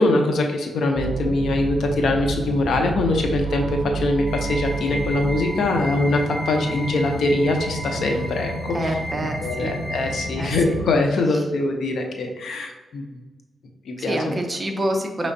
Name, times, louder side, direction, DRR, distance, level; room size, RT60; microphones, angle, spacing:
voice 1, 0.0-8.5 8.8-8.9 9.4-13.0 13.9-14.2, left 2 dB, 75° left, 3 dB, 0.7 m, -22 dB
sound 1, 0.9-10.9, right 3 dB, 65° right, 0.6 m, -30 dB
sound 2, 4.3-10.3, equal, 35° left, 0.6 m, -34 dB
voice 2, 8.7-9.7 10.3-10.8 14.0-15.3, right 1 dB, 25° right, 3 dB, 0.6 m, -27 dB
5.8 x 3.1 x 2.7 m, 1.2 s
wide cardioid pair, 120°, 0 cm